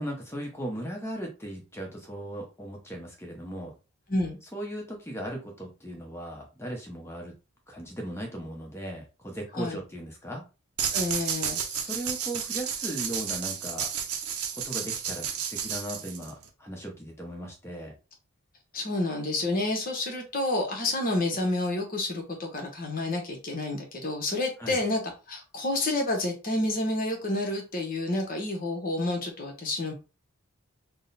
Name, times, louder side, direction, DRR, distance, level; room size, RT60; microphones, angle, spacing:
voice 1, 0.0-3.7 4.5-7.3 7.7-10.4 11.8-13.9 14.5-17.9 24.6-24.8, right 1 dB, 10° left, 1 dB, 0.9 m, -37 dB
sound 1, 10.8-16.5, right 8 dB, 80° right, 0.7 m, -32 dB
voice 2, 10.9-11.9 18.7-25.0 25.3-29.9, left 2 dB, 40° left, 2 dB, 1.0 m, -29 dB
3.6 x 2.1 x 4.0 m, 0.31 s
head